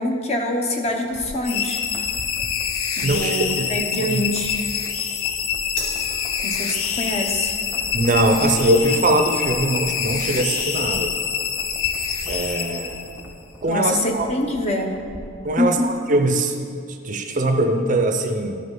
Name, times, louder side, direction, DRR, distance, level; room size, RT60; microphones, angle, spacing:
voice 1, 0.0-1.8 3.0-4.6 6.4-7.6 13.6-15.1 15.6-15.8, left 1 dB, 30° left, 2 dB, 0.7 m, -25 dB
sound 1, 0.8-15.5 15.8-15.9, equal, 5° right, 0.8 m, -41 dB
sound 2, 1.4-13.3, left 8 dB, 80° left, 0.6 m, -26 dB
voice 2, 3.0-3.4 4.0-4.2 7.9-11.1 12.3-13.0 13.6-14.3 15.4-16.5 17.0-18.6, right 1 dB, 40° right, 5 dB, 0.5 m, -21 dB
sound 3, 5.8-12.3, left 1 dB, 60° left, 1.7 m, -42 dB
13.0 x 5.6 x 3.8 m, 2.4 s
head